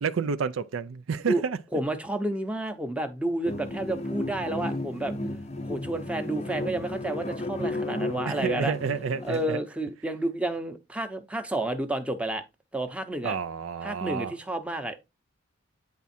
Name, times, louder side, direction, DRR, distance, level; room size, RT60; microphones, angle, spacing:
voice 1, 0.0-1.6 8.3-9.6 13.2-14.3, right 6 dB, 70° right, 0.4 m, -30 dB
voice 2, 1.7-5.2 5.6-8.7 9.2-12.4 12.7-13.4 13.8-15.0, right 1 dB, 5° right, 0.7 m, -30 dB
sound 1, 3.4-9.5, left 2 dB, 30° left, 0.6 m, -33 dB
9.4 x 3.5 x 4.3 m
head